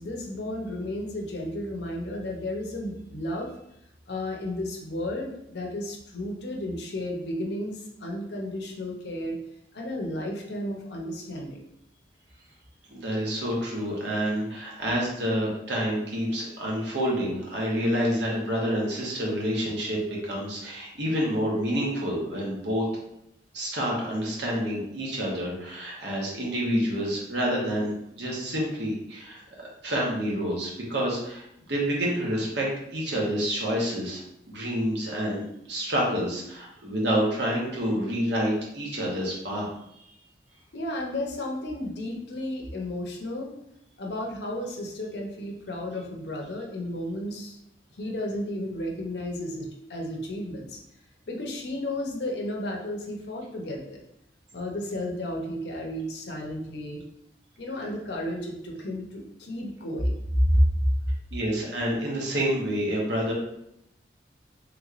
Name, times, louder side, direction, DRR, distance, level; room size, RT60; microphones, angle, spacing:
voice 1, 0.0-3.5 4.1-9.4 9.7-11.6 40.7-43.5 44.0-47.6 48.0-50.8 51.3-54.0 54.5-57.0 57.6-60.6, left 1 dB, 65° left, 0 dB, 0.7 m, -32 dB
voice 2, 12.9-22.8 23.5-31.4 31.7-35.4 35.7-39.7 39.9-40.1 61.3-63.3, equal, 70° right, -3 dB, 1.0 m, -28 dB
3.3 x 3.0 x 2.4 m, 0.77 s
head